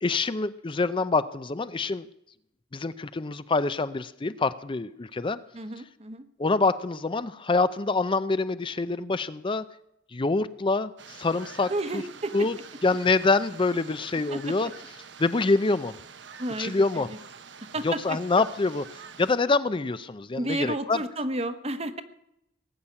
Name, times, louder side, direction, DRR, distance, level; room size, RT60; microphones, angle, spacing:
voice 1, 0.0-2.1 2.7-5.4 6.4-9.6 10.1-12.0 12.3-12.5 12.8-14.7 15.2-16.0 16.6-17.1 17.8-18.8 19.2-21.0, left 3 dB, 30° left, 13 dB, 0.5 m, -26 dB
voice 2, 5.5-6.2 11.7-12.5 14.3-14.4 16.4-17.0 17.6-18.2 20.4-22.0, right 1 dB, 35° right, 10 dB, 1.1 m, -32 dB
sound 1, 11.0-19.4, right 6 dB, 75° right, 1.1 m, -46 dB
18.5 x 7.3 x 9.8 m, 0.80 s
head